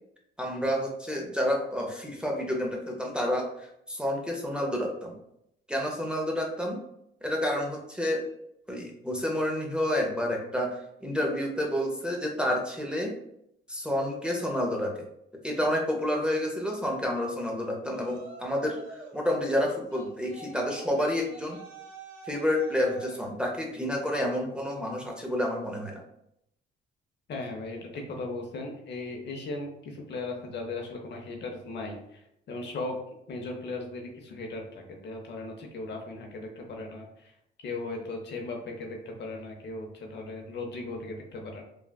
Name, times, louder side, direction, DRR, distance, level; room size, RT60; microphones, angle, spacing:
voice 1, 0.4-5.2 5.7-6.8 7.2-8.2 8.7-10.8 11.0-13.1 13.7-15.1 15.4-18.8 19.1-21.6 22.3-26.0, left 1 dB, 5° right, -1 dB, 0.6 m, -29 dB
Yell, 17.9-19.2 19.9-23.3, right 2 dB, 85° right, 0.6 m, -47 dB
voice 2, 27.3-32.0 32.5-33.0 33.3-37.1 37.6-41.6, left 2 dB, 60° left, 2 dB, 0.7 m, -37 dB
3.3 x 2.3 x 2.2 m, 0.78 s
cardioid pair, 90°, 20 cm